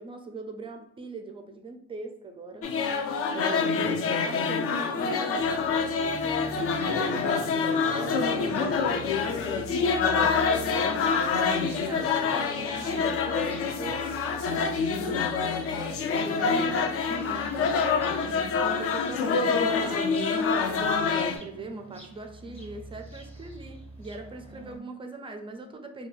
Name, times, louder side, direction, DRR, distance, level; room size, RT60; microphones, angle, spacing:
voice 1, 0.0-2.7 3.3-6.2 10.4-17.5 18.6-26.1, right 2 dB, 20° right, 5 dB, 0.4 m, -41 dB
sound 1, 2.6-21.4, left 5 dB, 50° left, 0.4 m, -26 dB
sound 2, 5.4-24.8, right 2 dB, 5° left, 0.7 m, -45 dB
voice 2, 6.8-7.5 7.8-10.3, left 2 dB, 85° left, -1 dB, 0.9 m, -37 dB
2.5 x 2.3 x 3.1 m, 0.72 s
cardioid pair, 110°, 30 cm